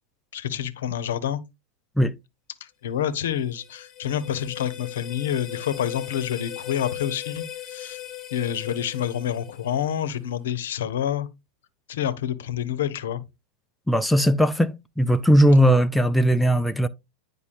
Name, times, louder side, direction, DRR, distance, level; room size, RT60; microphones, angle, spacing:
voice 1, 0.3-1.4 2.8-8.0 8.3-11.3 11.9-13.2, left 9 dB, 60° left, 0.8 m, -28 dB
sound 1, 3.1-10.2, left 13 dB, 30° left, 1.0 m, -38 dB
voice 2, 13.9-16.9, equal, ahead, 0.3 m, -18 dB
9.5 x 5.2 x 2.5 m
figure-of-eight pair, 90°, 0 cm